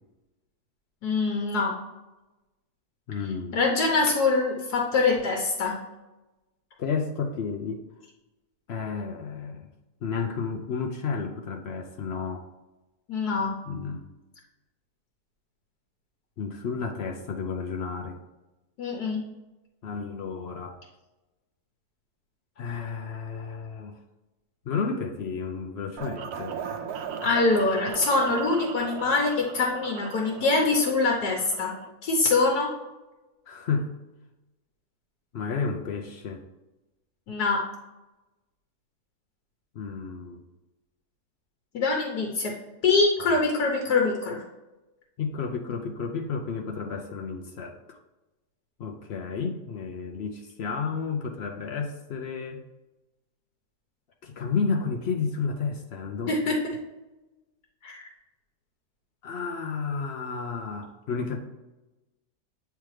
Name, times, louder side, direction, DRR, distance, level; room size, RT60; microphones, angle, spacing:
voice 1, 1.0-1.8 3.5-5.8 13.1-13.5 18.8-19.2 27.2-31.7 32.0-32.7 37.3-37.6 41.7-42.5 42.8-44.4 56.3-56.7 57.8-58.1, left 3 dB, 80° left, -1 dB, 1.5 m, -24 dB
voice 2, 3.1-3.6 6.8-7.8 8.7-9.7 10.0-12.4 13.7-14.0 16.4-18.2 19.8-20.8 22.6-24.0 24.7-26.6 33.5-33.9 35.3-36.4 39.7-40.4 43.2-43.3 45.2-48.0 48.8-52.6 54.2-56.3 59.2-61.4, left 5 dB, 65° left, 3 dB, 0.6 m, -31 dB
sound 1, 26.0-31.9, right 7 dB, 75° right, 1.1 m, -37 dB
8.7 x 3.4 x 3.2 m, 1.1 s
omnidirectional pair, 1.7 m